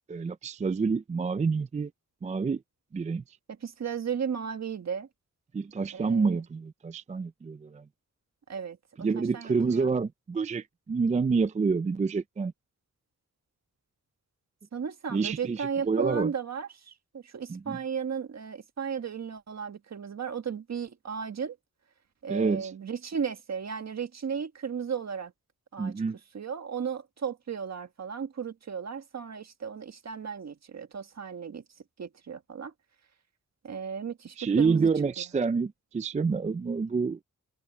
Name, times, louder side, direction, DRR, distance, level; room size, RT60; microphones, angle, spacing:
voice 1, 0.1-1.9 2.2-2.6 2.9-3.2 5.5-7.8 9.0-12.5 15.1-16.3 17.5-17.8 22.3-22.7 25.8-26.2 34.4-37.2, right 4 dB, 25° right, 0.4 m, -28 dB
voice 2, 3.5-5.1 5.9-6.4 8.5-9.9 14.7-21.6 22.2-25.3 25.7-25.9 26.3-31.6 32.0-32.7 33.6-34.9, right 6 dB, 55° right, 1.6 m, -35 dB
wide cardioid pair, 140°, 32 cm